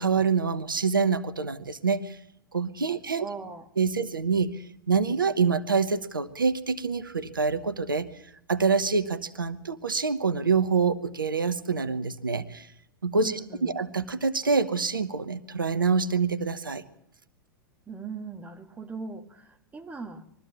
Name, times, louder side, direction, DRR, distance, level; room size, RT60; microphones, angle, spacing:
voice 1, 0.0-2.2 2.5-3.2 3.8-8.1 8.5-12.7 13.0-16.8, right 5 dB, 75° right, 13 dB, 1.0 m, -26 dB
voice 2, 3.2-3.7 13.2-13.7 17.9-20.2, right 4 dB, 15° right, 6 dB, 1.6 m, -39 dB
22.0 x 14.0 x 8.5 m, 0.77 s
figure-of-eight pair, 95°, 11 cm